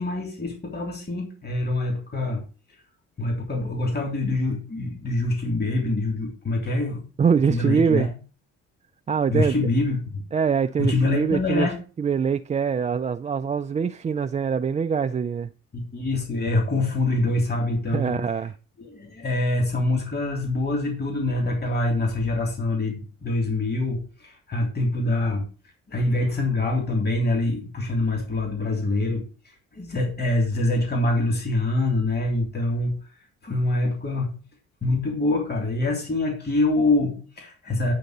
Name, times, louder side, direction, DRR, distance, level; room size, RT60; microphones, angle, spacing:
voice 1, 0.0-2.4 3.2-7.0 7.5-8.1 9.3-10.2 10.8-11.8 15.7-18.1 18.8-25.5 25.9-32.9 33.4-34.3 34.8-37.9, left 2 dB, 35° left, 3.3 m, -25 dB
voice 2, 7.2-8.1 9.1-9.6 10.3-11.7 12.0-15.5 17.9-18.5, right 6 dB, 25° right, 0.3 m, -23 dB
9.2 x 3.9 x 6.6 m
cardioid pair, 90°, 30 cm